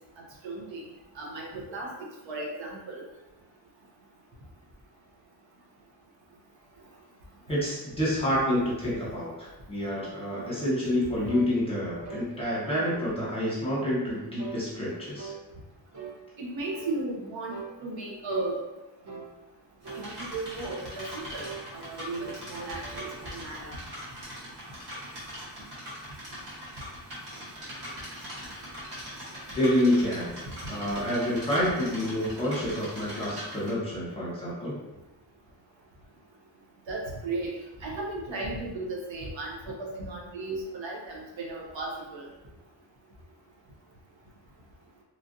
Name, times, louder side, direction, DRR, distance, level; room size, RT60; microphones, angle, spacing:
voice 1, 0.4-0.9 1.1-3.0 16.4-17.5 17.8-18.6 20.0-21.4 21.7-23.8 36.9-37.5 37.8-42.3, right 2 dB, 85° right, -2 dB, 0.8 m, -35 dB
voice 2, 7.5-15.3 29.5-30.3 30.7-34.7, left 1 dB, 10° left, -7 dB, 1.0 m, -28 dB
sound 1, 11.3-11.5 12.0-12.3 12.8-13.1 13.6-13.9 14.4-14.6 15.2-15.4 15.9-16.2 16.7-17.0 17.5-17.7 18.3-18.5 19.1-19.3 19.8-20.1 20.6-20.9 21.4-21.7 22.2-22.5 22.8-23.2, right 6 dB, 40° right, 0.6 m, -41 dB
sound 2, 19.8-33.7, equal, 65° right, 1.3 m, -41 dB
3.1 x 2.5 x 2.6 m, 1.0 s
wide cardioid pair, 145°, 44 cm